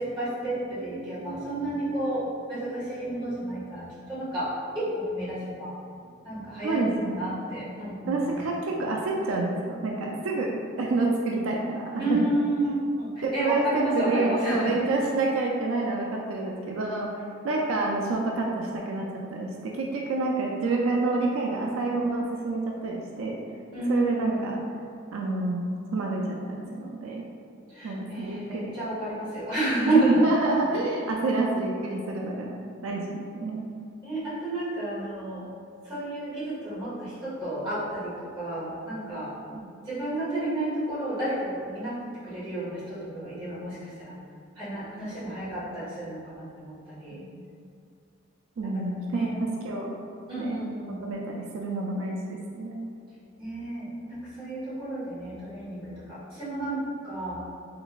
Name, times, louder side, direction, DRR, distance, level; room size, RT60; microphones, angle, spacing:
voice 1, 0.0-5.8 6.2-8.4 12.0-14.8 23.7-24.5 27.7-30.3 32.9-33.0 34.0-35.5 35.8-39.3 39.8-44.2 44.5-47.2 48.6-49.4 50.3-51.0 53.4-57.4, right 1 dB, 25° right, -12 dB, 1.5 m, -31 dB
voice 2, 6.6-7.2 8.1-12.2 13.2-17.1 17.4-19.0 19.3-23.4 23.9-24.6 25.1-25.6 25.9-27.2 27.8-28.7 29.9-32.6 32.8-33.7 39.6-39.7 47.1-47.3 48.6-50.0 50.4-50.6 51.0-52.8, right 3 dB, 85° right, -1 dB, 0.4 m, -28 dB
3.8 x 3.3 x 2.3 m, 2.3 s
head